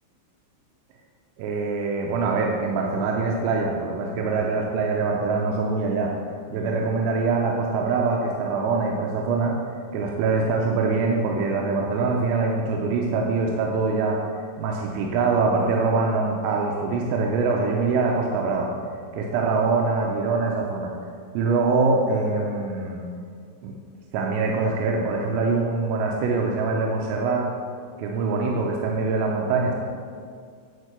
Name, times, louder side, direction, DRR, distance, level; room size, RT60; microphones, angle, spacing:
voice 1, 1.4-6.1 6.5-9.6 9.9-14.2 14.6-18.7 19.1-20.9 21.3-23.0 23.6-23.8 24.1-27.5 28.0-29.7, right 4 dB, 90° right, 0 dB, 3.4 m, -24 dB
11.0 x 4.5 x 6.7 m, 2.3 s
omnidirectional pair, 5.7 m